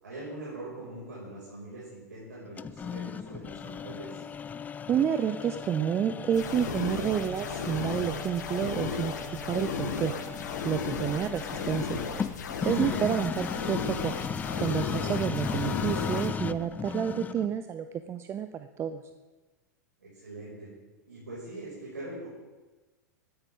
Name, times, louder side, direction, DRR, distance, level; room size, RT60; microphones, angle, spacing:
voice 1, 0.0-4.2 12.6-13.0 20.0-20.7 21.0-22.3, right 1 dB, 85° right, -7 dB, 6.3 m, -42 dB
sound 1, 2.6-17.6, left 6 dB, 15° left, 0.4 m, -36 dB
voice 2, 4.9-10.1 10.6-12.0 12.6-14.1 14.6-19.0, right 9 dB, 25° right, 10 dB, 0.6 m, -29 dB
sound 2, 6.3-16.3, left 5 dB, 75° left, 1.8 m, -35 dB
19.5 x 14.0 x 3.8 m, 1.2 s
hypercardioid pair, 95°, 10 cm